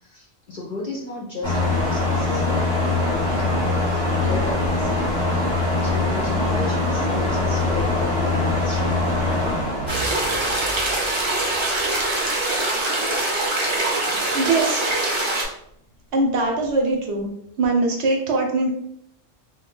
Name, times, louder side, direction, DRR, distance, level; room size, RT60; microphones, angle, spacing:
voice 1, 0.0-5.1 5.7-9.0, left 3 dB, 50° left, -3 dB, 0.6 m, -33 dB
sound 1, 1.4-11.6, left 2 dB, 25° left, 0.8 m, -23 dB
sound 2, 9.9-15.4, right 2 dB, 35° right, 0.4 m, -23 dB
voice 2, 14.3-14.8 16.1-17.3 17.6-18.7, right 2 dB, 65° right, 1 dB, 0.8 m, -21 dB
2.6 x 2.1 x 3.7 m, 0.73 s
omnidirectional pair, 1.3 m